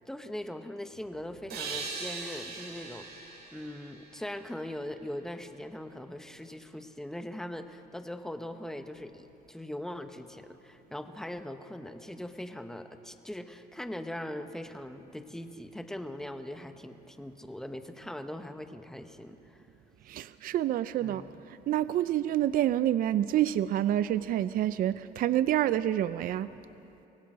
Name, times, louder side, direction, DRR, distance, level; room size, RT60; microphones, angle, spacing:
voice 1, 0.1-19.6 21.0-21.4, left 1 dB, 5° left, 7 dB, 1.1 m, -41 dB
sound 1, 1.5-5.0, right 4 dB, 75° right, 5.2 m, -41 dB
voice 2, 20.1-21.2 21.7-26.5, right 12 dB, 55° right, 14 dB, 0.5 m, -27 dB
24.0 x 17.5 x 6.2 m, 2.9 s
cardioid pair, 110°, 17 cm